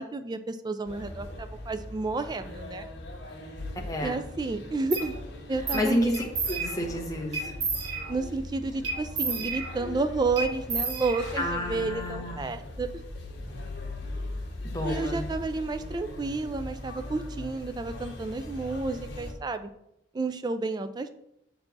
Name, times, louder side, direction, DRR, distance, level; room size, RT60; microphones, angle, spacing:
voice 1, 0.0-2.8 4.0-5.2 5.5-6.2 8.1-13.0 14.8-19.7 20.1-21.1, right 3 dB, 20° right, 10 dB, 0.3 m, -31 dB
sound 1, 0.8-19.3, left 1 dB, 60° left, 1.3 m, -40 dB
voice 2, 3.8-4.2 5.7-7.5 11.4-12.4 14.6-15.2, equal, 20° left, 1 dB, 0.9 m, -30 dB
sound 2, 4.9-5.1 5.7-5.9 6.1-7.0 7.3-8.3 8.8-10.0 10.4-11.6, right 4 dB, 65° right, 1.2 m, -32 dB
6.7 x 4.4 x 4.0 m, 0.80 s
head